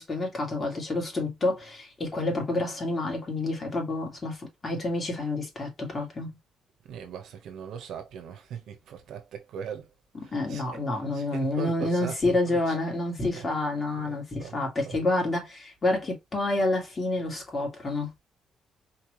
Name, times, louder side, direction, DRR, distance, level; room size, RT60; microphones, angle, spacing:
voice 1, 0.0-6.3 10.3-18.1, left 2 dB, 30° left, 2.3 m, -28 dB
voice 2, 6.8-9.9 10.2-10.8 11.1-12.7 13.2-13.5 14.0-15.1, right 8 dB, 80° right, 1.1 m, -40 dB
4.5 x 2.9 x 3.1 m
cardioid pair, 90°, 0 cm